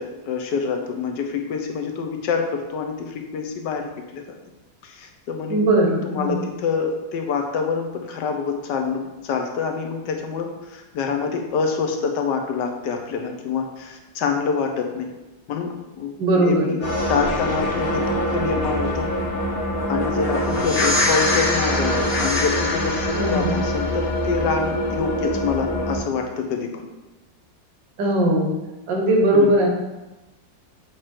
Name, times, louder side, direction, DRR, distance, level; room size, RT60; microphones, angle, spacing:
voice 1, 0.0-4.3 4.8-5.6 6.0-15.1 15.5-16.1 16.4-16.8 17.1-19.1 19.9-26.8 29.3-29.5, left 5 dB, 75° left, 3 dB, 1.3 m, -26 dB
voice 2, 5.5-6.4 16.2-16.8 23.1-23.6 28.0-28.5 28.9-29.7, right 1 dB, 75° right, 1 dB, 1.8 m, -19 dB
sound 1, 16.8-26.0, left 1 dB, 40° left, 1.7 m, -23 dB
7.4 x 3.2 x 4.3 m, 1.1 s
omnidirectional pair, 2.0 m